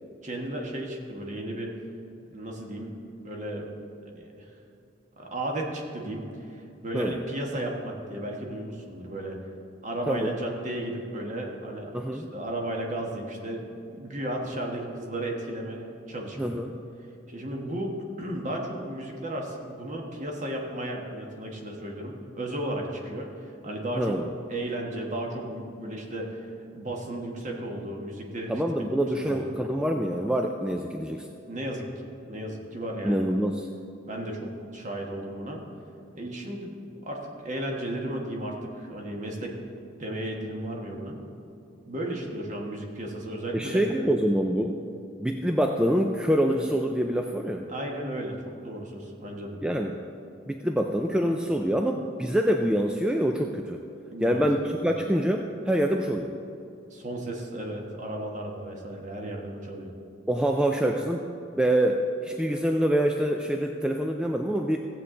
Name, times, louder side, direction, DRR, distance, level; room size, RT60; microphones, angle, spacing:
voice 1, 0.2-1.8 2.3-2.9 3.2-3.7 4.0-4.5 5.2-9.4 9.8-16.4 17.3-24.2 24.5-26.5 26.7-28.9 29.3-29.6 31.5-33.4 34.1-35.6 36.1-39.5 40.0-41.2 41.8-43.8 47.7-49.6 54.1-54.5 54.7-54.9 56.9-59.9, right 1 dB, 40° right, 0 dB, 1.4 m, -34 dB
voice 2, 11.9-12.3 16.4-16.8 23.9-24.3 28.5-31.3 33.0-33.7 43.5-44.8 45.2-47.7 49.6-50.0 50.5-53.8 54.2-56.3 60.3-64.8, equal, 5° right, 3 dB, 0.3 m, -26 dB
15.0 x 8.2 x 3.8 m, 2.6 s
head